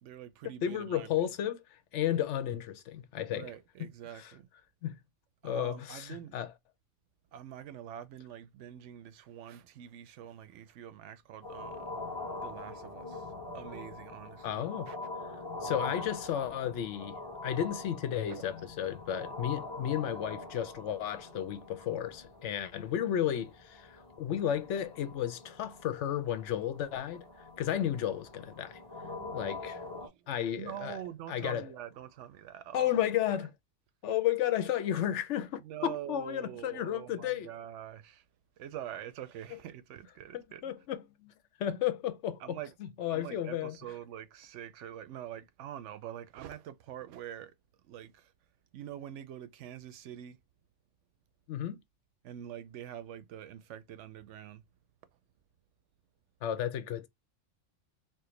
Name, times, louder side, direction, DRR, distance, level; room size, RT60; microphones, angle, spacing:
voice 1, 0.0-1.3 3.3-4.5 5.4-6.4 7.3-12.1 12.4-15.0 18.3-18.5 29.9-30.3 30.6-32.9 33.3-33.4 35.6-38.3 38.6-40.7 42.4-42.7 43.1-48.3 48.7-50.4 52.2-54.6, right 11 dB, 80° right, 0.9 m, -45 dB
voice 2, 0.6-3.5 3.8-3.9 4.8-5.0 5.4-6.5 14.4-14.9 15.6-17.2 17.4-27.2 27.6-28.8 29.3-29.8 30.3-31.0 31.3-31.6 32.7-33.5 34.0-37.5 40.3-41.3 41.6-42.6 43.0-43.8 51.5-51.8 56.4-57.1, left 10 dB, 80° left, 0.9 m, -33 dB
sound 1, 11.4-30.1, left 2 dB, 20° left, 1.0 m, -43 dB
4.4 x 2.0 x 3.1 m
omnidirectional pair, 1.2 m